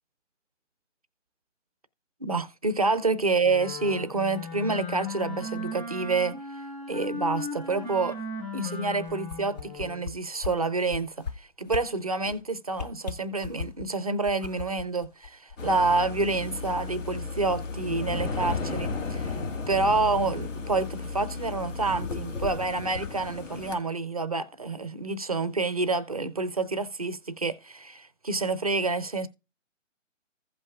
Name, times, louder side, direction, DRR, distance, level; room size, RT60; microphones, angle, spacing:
voice 1, 2.2-6.4 6.9-8.2 8.5-19.4 19.7-29.3, right 3 dB, 30° right, 0.4 m, -28 dB
Wind instrument woodwind instrument, 3.4-10.1, left 2 dB, 10° left, 1.6 m, -37 dB
sound 1, 9.1-10.1 10.4-10.5 10.9-11.3 11.7-11.8 12.2-12.4 12.7-13.9 14.2-15.8 16.2-16.3, left 5 dB, 35° left, 0.5 m, -36 dB
sound 2, 15.6-23.8, left 4 dB, 75° left, 1.7 m, -34 dB
15.5 x 5.4 x 2.3 m
hypercardioid pair, 155°, 38 cm